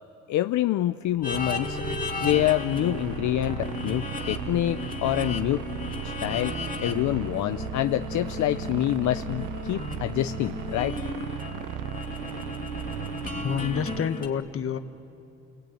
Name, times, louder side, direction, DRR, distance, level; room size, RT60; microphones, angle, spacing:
voice 1, 0.3-1.8 2.2-5.6 6.2-6.6 6.8-11.0, left 14 dB, 75° left, 10 dB, 0.6 m, -26 dB
sound 1, 1.2-14.3, left 3 dB, 25° left, 2.4 m, -35 dB
Heavy Distortion Bassy, 1.3-14.0, right 12 dB, 85° right, 0.7 m, -36 dB
voice 2, 13.4-14.8, left 8 dB, 45° left, 10 dB, 1.1 m, -28 dB
28.5 x 22.5 x 9.2 m, 2.9 s
cardioid pair, 90°, 30 cm